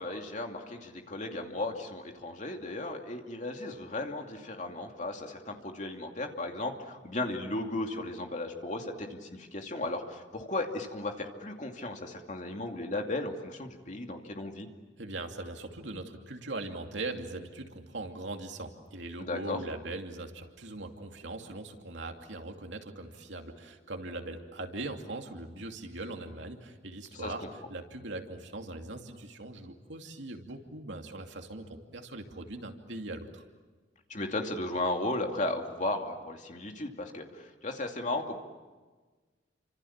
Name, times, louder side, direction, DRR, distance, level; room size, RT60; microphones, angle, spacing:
voice 1, 0.0-14.7 19.2-19.6 27.1-27.5 34.1-38.4, left 2 dB, 40° left, 3 dB, 2.6 m, -35 dB
voice 2, 15.0-27.4 27.7-33.4, right 2 dB, 75° right, 3 dB, 2.7 m, -40 dB
29.5 x 26.0 x 7.3 m, 1.3 s
head